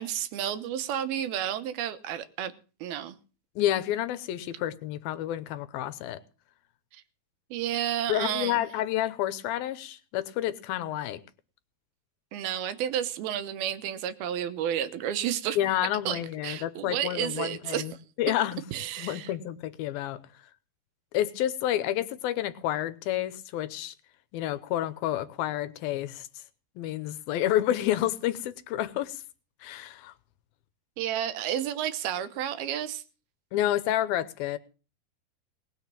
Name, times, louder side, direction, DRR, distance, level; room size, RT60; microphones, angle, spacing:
voice 1, 0.0-2.5 2.8-3.2 6.9-7.0 7.5-8.7 12.3-15.6 16.1-17.8 18.7-19.3 31.0-33.0, right 10 dB, 85° right, 3.0 m, -31 dB
voice 2, 3.6-6.2 8.1-11.2 15.6-17.9 18.2-18.6 19.0-20.2 21.1-23.9 24.3-26.3 26.8-29.2 29.6-30.1 33.5-34.6, left 13 dB, 85° left, 2.7 m, -29 dB
19.0 x 6.5 x 7.4 m
omnidirectional pair, 4.2 m